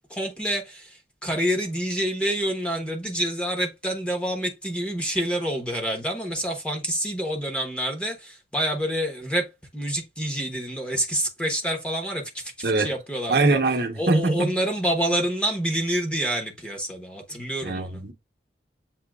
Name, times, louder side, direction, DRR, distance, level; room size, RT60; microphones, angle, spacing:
voice 1, 0.1-9.5 9.7-13.6 14.0-18.0, equal, 5° left, 0.9 m, -27 dB
voice 2, 12.6-12.9 13.3-14.5 17.6-18.1, right 3 dB, 65° right, 0.8 m, -22 dB
7.5 x 2.8 x 2.3 m
head